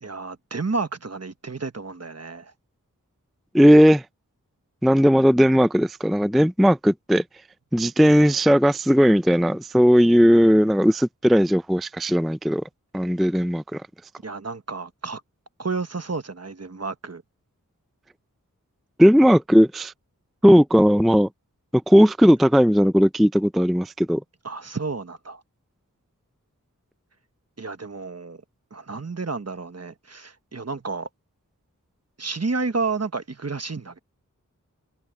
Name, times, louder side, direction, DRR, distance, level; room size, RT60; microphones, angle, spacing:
voice 1, 0.0-2.5 14.2-15.2 15.6-17.2 24.4-25.4 27.6-28.4 28.7-31.1 32.2-34.0, right 4 dB, 50° right, 1.2 m, -31 dB
voice 2, 3.5-4.0 4.8-7.2 7.7-12.6 12.9-13.8 19.0-19.9 20.4-21.3 21.7-24.2, equal, ahead, 0.4 m, -17 dB
wide cardioid pair, 55°, 32 cm